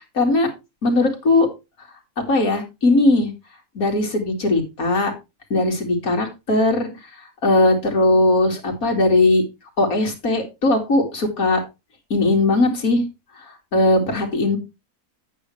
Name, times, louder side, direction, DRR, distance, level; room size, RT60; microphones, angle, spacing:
voice 1, 0.1-0.5 0.8-1.5 2.3-3.3 3.8-5.1 5.5-6.9 7.4-9.4 9.8-11.6 12.1-13.0 13.7-14.6, left 2 dB, 60° left, 2 dB, 2.6 m, -18 dB
9.6 x 8.6 x 3.2 m, 0.25 s
omnidirectional pair, 1.7 m